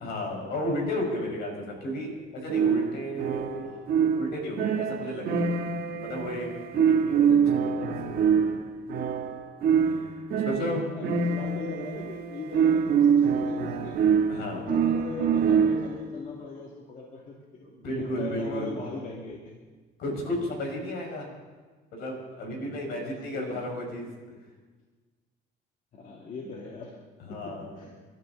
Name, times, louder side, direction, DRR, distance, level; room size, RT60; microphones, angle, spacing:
voice 1, 0.0-5.5 6.0-8.4 9.8-10.8 14.3-14.7 17.6-18.8 20.0-21.3 21.9-24.1 27.3-27.8, equal, 75° left, 1 dB, 5.4 m, -33 dB
sound 1, 2.5-16.1, right 6 dB, 65° right, 1.4 m, -25 dB
voice 2, 10.4-14.0 14.5-17.7 18.0-19.5 20.1-20.2 22.9-23.8 25.9-27.0 27.3-27.9, left 4 dB, 50° left, -2 dB, 2.4 m, -40 dB
29.0 x 12.5 x 3.9 m, 1.4 s
cardioid pair, 110°, 17 cm